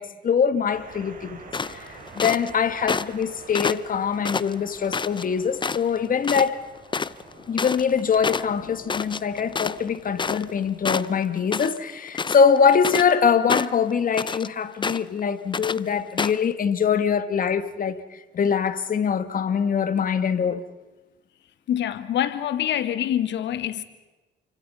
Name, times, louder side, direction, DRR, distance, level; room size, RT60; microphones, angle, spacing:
voice 1, 0.0-1.4 1.7-6.6 7.5-20.6, left 6 dB, 45° left, 1.8 m, -23 dB
sound 1, 0.7-11.2, right 4 dB, 45° right, 6.1 m, -48 dB
sound 2, 1.5-2.5 2.9-3.2 3.5-5.2 5.6-6.0 6.2-6.5 6.7-10.6 10.8-11.8 12.1-13.1 13.5-14.5 14.8-15.2 15.5-15.8 16.2-16.4, left 5 dB, 25° left, 0.7 m, -28 dB
voice 2, 21.7-23.8, left 10 dB, 70° left, 1.8 m, -25 dB
29.5 x 25.0 x 5.6 m
cardioid pair, 80°, 19 cm